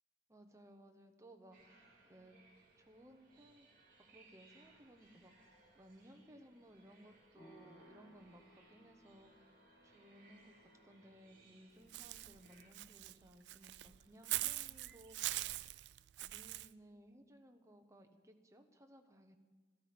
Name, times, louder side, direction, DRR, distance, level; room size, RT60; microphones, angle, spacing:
voice 1, 0.3-1.8 2.1-2.4 2.8-3.7 4.1-9.5 9.8-15.2 16.1-19.4, right 1 dB, 15° right, 5 dB, 0.9 m, -61 dB
sound 1, 1.5-12.7, right 2 dB, 50° right, 2.6 m, -67 dB
sound 2, 7.3-15.7, right 1 dB, 60° left, 5.6 m, -67 dB
Walk footsteps / Bird, 11.9-16.7, right 17 dB, 70° right, 0.3 m, -42 dB
13.0 x 13.0 x 5.1 m, 1.4 s
head